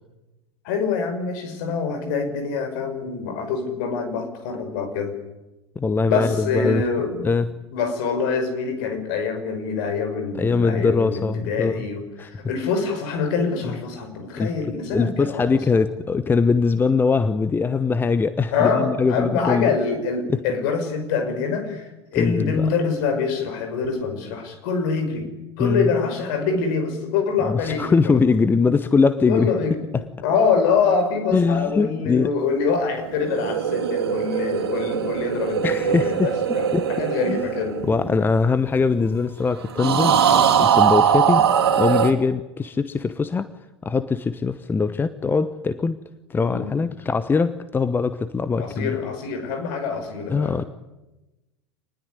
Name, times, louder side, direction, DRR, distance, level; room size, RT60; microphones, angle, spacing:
voice 1, 0.6-5.1 6.0-7.3 7.7-15.4 15.7-15.8 18.5-25.3 25.6-28.2 29.3-29.8 30.2-37.8 46.5-46.7 48.6-50.7, left 5 dB, 50° left, 7 dB, 5.7 m, -25 dB
voice 2, 5.8-6.9 7.2-7.5 10.4-11.9 12.2-12.3 14.4-14.5 14.9-19.7 20.3-20.4 22.1-22.7 25.6-25.9 27.5-29.5 29.9-30.0 31.3-32.3 35.6-36.3 36.7-36.8 37.3-37.4 37.8-41.5 41.8-43.5 43.8-46.0 46.3-48.9 50.3-50.6, left 4 dB, 15° left, 13 dB, 1.0 m, -22 dB
sound 1, 33.1-38.7 39.8-42.1, right 8 dB, 65° right, 3.1 m, -21 dB
26.5 x 20.0 x 9.8 m, 1.0 s
figure-of-eight pair, 85°, 14 cm